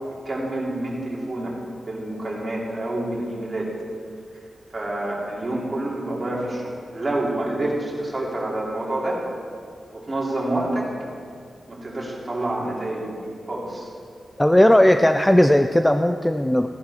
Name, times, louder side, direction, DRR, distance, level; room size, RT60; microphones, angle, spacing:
voice 1, 0.2-1.5 1.8-3.7 4.7-9.2 9.9-10.9 11.7-13.1 13.5-13.9, right 1 dB, 30° right, -5 dB, 3.0 m, -27 dB
voice 2, 14.4-16.7, left 1 dB, 10° left, 7 dB, 0.4 m, -16 dB
15.5 x 10.5 x 4.2 m, 2.2 s
wide cardioid pair, 130°, 0 cm